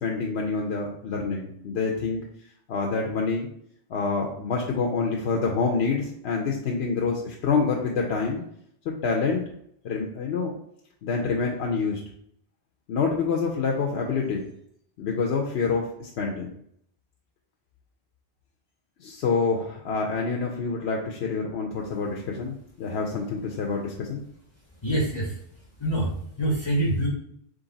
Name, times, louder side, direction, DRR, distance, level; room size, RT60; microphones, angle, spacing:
voice 1, 0.0-2.2 2.7-3.5 3.9-8.4 8.8-9.4 9.8-10.5 11.0-12.0 12.9-14.4 15.0-16.5 19.0-24.2, left 4 dB, 75° left, 0 dB, 0.9 m, -27 dB
voice 2, 24.8-27.1, right 1 dB, 30° left, -1 dB, 0.7 m, -26 dB
3.9 x 3.2 x 3.9 m, 0.70 s
omnidirectional pair, 1.1 m